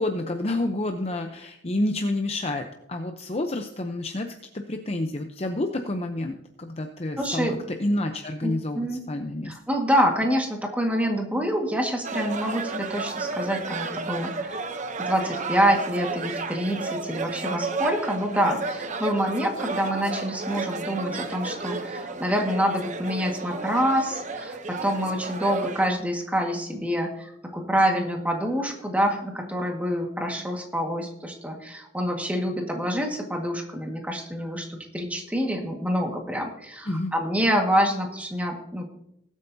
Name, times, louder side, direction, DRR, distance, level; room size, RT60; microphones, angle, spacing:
voice 1, 0.0-4.3 4.5-9.5 36.9-37.1, left 1 dB, 35° left, 5 dB, 0.7 m, -29 dB
voice 2, 7.2-7.6 8.4-9.0 9.4-14.6 15.0-38.9, equal, 10° right, 2 dB, 1.7 m, -26 dB
sound 1, 12.0-25.9, right 3 dB, 40° right, 0.8 m, -32 dB
20.0 x 8.4 x 2.8 m, 0.80 s
head